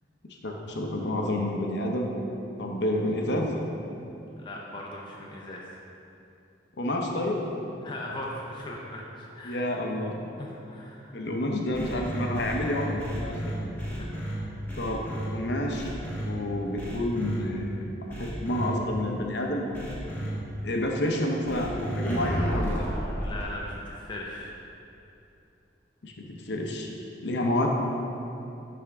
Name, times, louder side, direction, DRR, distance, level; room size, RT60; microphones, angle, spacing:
voice 1, 0.4-2.1 2.6-3.5 6.8-7.4 9.4-10.2 11.1-13.5 14.8-15.0 15.3-15.9 16.2-17.8 18.2-19.7 20.6-22.9 26.0-26.9 27.2-27.7, left 1 dB, 60° left, 1 dB, 0.7 m, -29 dB
voice 2, 4.4-5.7 7.8-9.7 10.4-11.3 14.0-14.6 23.2-24.5, left 1 dB, 25° left, -3 dB, 0.5 m, -39 dB
sound 1, 11.7-14.3 14.7-15.3 15.7-16.2 16.8-17.4 18.1-18.7 19.7-20.3 21.5-23.4, equal, 10° left, 0.9 m, -32 dB
9.5 x 3.5 x 3.5 m, 2.8 s
head